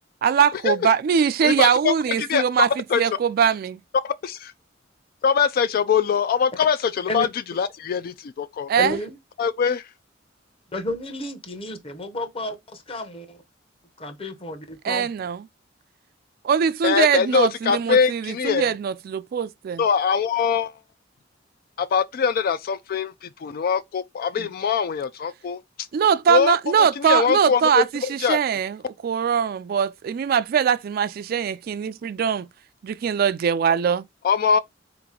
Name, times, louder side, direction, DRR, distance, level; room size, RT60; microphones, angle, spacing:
voice 1, 0.2-3.8 8.7-9.0 14.8-15.4 16.4-19.8 24.4-24.5 25.9-32.5 33.0-34.1, right 7 dB, 55° right, 0.3 m, -22 dB
voice 2, 1.4-1.9 2.3-2.4 2.9-3.0 4.0-4.5 5.2-7.3 7.6-8.7 9.4-9.8 16.8-18.7 19.8-20.7 21.8-25.6 26.3-26.6 27.0-27.8 28.2-28.4 34.2-34.6, left 6 dB, 50° left, 0.3 m, -22 dB
voice 3, 8.8-9.2 10.7-13.4 14.0-15.1, left 2 dB, 30° left, 0.9 m, -31 dB
4.0 x 2.9 x 3.7 m
head